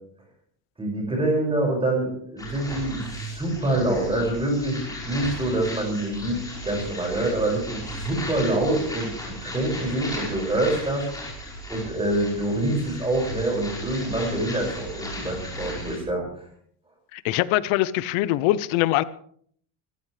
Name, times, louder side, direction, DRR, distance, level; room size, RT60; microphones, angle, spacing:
voice 1, 0.8-9.1 9.4-11.1 11.7-16.3, right 1 dB, 10° right, 1 dB, 5.9 m, -26 dB
sound 1, 2.4-16.0, left 1 dB, 10° left, 5.2 m, -36 dB
voice 2, 17.1-19.0, left 15 dB, 85° left, 16 dB, 0.9 m, -23 dB
25.0 x 14.5 x 3.3 m, 0.62 s
cardioid pair, 175°, 47 cm